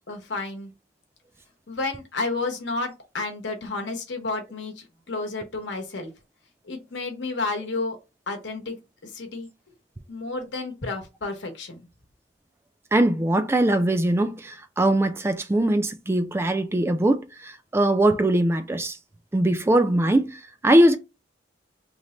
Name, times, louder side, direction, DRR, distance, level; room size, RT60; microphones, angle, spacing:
voice 1, 0.1-0.7 1.7-6.1 6.6-8.0 8.3-9.5 10.1-11.8, left 3 dB, 75° left, 0.9 m, -31 dB
voice 2, 12.9-19.0 19.3-21.0, right 1 dB, 15° right, 0.3 m, -21 dB
3.2 x 2.1 x 3.8 m
head